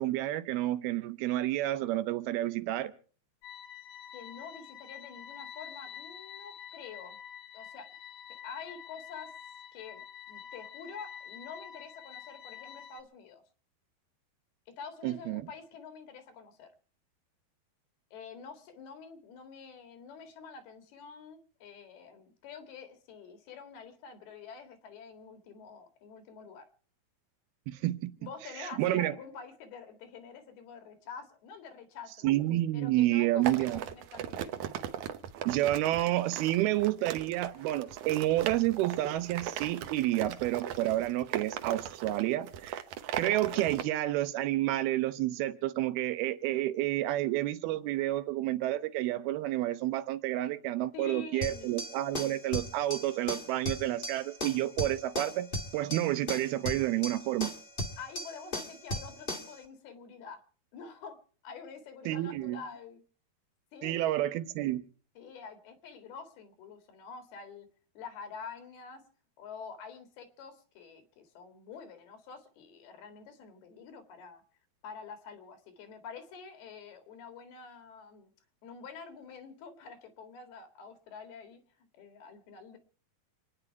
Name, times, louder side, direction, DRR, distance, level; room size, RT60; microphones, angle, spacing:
voice 1, 0.0-2.9 15.0-15.4 27.7-28.1 28.6-29.1 32.2-33.8 35.4-42.8 43.2-55.5 55.7-57.5 62.1-62.6 63.8-64.8, right 15 dB, 85° right, 2.9 m, -30 dB
sound 1, 3.4-13.0, left 9 dB, 65° left, 2.0 m, -47 dB
voice 2, 4.1-7.2 7.5-7.9 8.4-9.3 9.7-10.0 10.3-13.4 14.7-16.7 18.1-26.7 28.2-32.3 32.7-34.6 50.9-51.7 58.0-60.4 60.7-61.2 61.4-63.0 63.7-64.1 65.2-67.7 68.0-69.0 69.4-74.4 74.8-78.3 78.6-82.8, left 5 dB, 85° left, 4.0 m, -47 dB
sound 2, 33.4-43.8, right 10 dB, 70° right, 2.0 m, -38 dB
sound 3, 51.4-59.6, left 1 dB, 30° left, 0.9 m, -37 dB
27.5 x 10.0 x 4.6 m
omnidirectional pair, 4.3 m